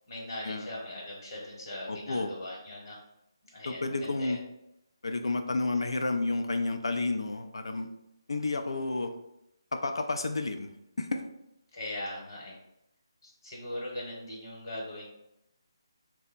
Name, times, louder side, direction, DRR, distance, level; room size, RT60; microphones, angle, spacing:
voice 1, 0.1-3.0 3.5-4.4 11.7-12.6 13.2-15.1, left 1 dB, 50° left, -3 dB, 1.1 m, -40 dB
voice 2, 1.9-2.3 3.7-4.4 5.0-7.9 8.3-9.1 9.7-10.7 11.0-11.2, left 3 dB, 75° left, 6 dB, 0.5 m, -31 dB
2.9 x 2.1 x 4.2 m, 0.84 s
figure-of-eight pair, 155°, 3 cm